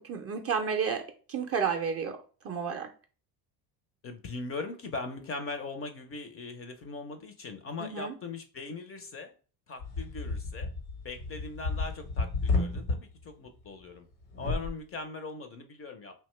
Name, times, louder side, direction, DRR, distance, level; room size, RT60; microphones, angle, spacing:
voice 1, 0.0-2.9 7.8-8.2, right 6 dB, 30° right, 0.4 m, -32 dB
voice 2, 4.0-9.3 9.7-10.7 11.0-14.0 14.4-16.1, left 3 dB, 30° left, 0.4 m, -40 dB
sound 1, 9.8-13.0 14.3-14.7, left 3 dB, 85° left, 1.1 m, -31 dB
2.7 x 2.2 x 3.0 m
supercardioid pair, 75°, 49 cm